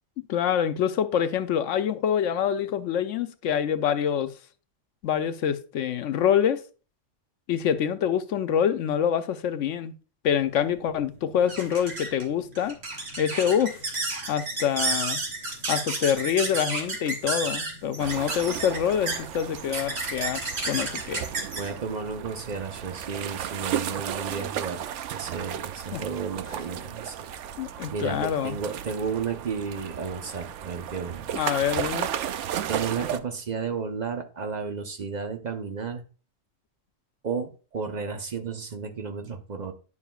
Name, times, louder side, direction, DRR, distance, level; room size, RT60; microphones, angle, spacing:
voice 1, 0.2-4.3 5.0-6.6 7.5-9.9 10.2-12.8 13.2-13.8 14.3-15.2 15.7-21.3 25.9-26.0 27.6-28.6 31.3-32.1, left 8 dB, 75° left, 1.0 m, -26 dB
sound 1, 10.3-23.2, right 2 dB, 55° right, 1.7 m, -32 dB
sound 2, 18.0-33.2, right 10 dB, 70° right, 0.8 m, -34 dB
voice 2, 21.6-24.9 25.1-27.3 27.9-31.3 32.7-36.0 37.2-39.7, right 5 dB, 40° right, 0.8 m, -33 dB
9.7 x 5.6 x 2.3 m
omnidirectional pair, 1.3 m